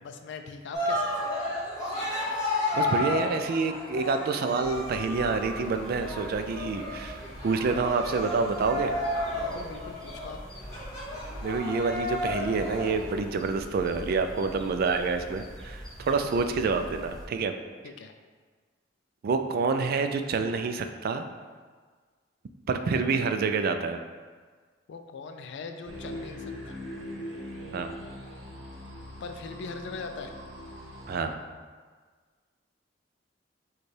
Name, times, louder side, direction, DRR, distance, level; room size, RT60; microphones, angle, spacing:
voice 1, 0.0-1.2 9.3-10.4 17.8-18.1 24.9-26.8 29.2-30.3, left 4 dB, 65° left, 6 dB, 0.3 m, -41 dB
Cheering, 0.7-13.1, left 1 dB, 20° left, 1.2 m, -32 dB
voice 2, 2.7-8.9 11.4-17.5 19.2-21.2 22.7-24.0 27.7-27.9 31.1-31.4, right 4 dB, 50° right, 7 dB, 0.3 m, -28 dB
sound 1, 4.6-17.3, equal, 5° left, 0.6 m, -44 dB
sound 2, 25.8-31.2, left 1 dB, 70° right, 1.1 m, -41 dB
6.3 x 2.3 x 3.3 m, 1.5 s
head